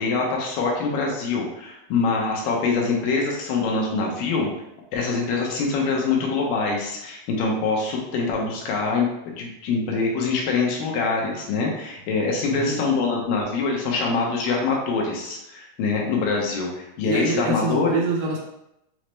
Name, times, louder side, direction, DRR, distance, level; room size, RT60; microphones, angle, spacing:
voice 1, 0.0-4.5 4.9-18.0, left 4 dB, 80° left, -1 dB, 2.5 m, -24 dB
voice 2, 12.5-12.9 17.0-18.4, right 3 dB, 80° right, -2 dB, 1.8 m, -26 dB
6.2 x 2.1 x 3.1 m, 0.84 s
omnidirectional pair, 4.0 m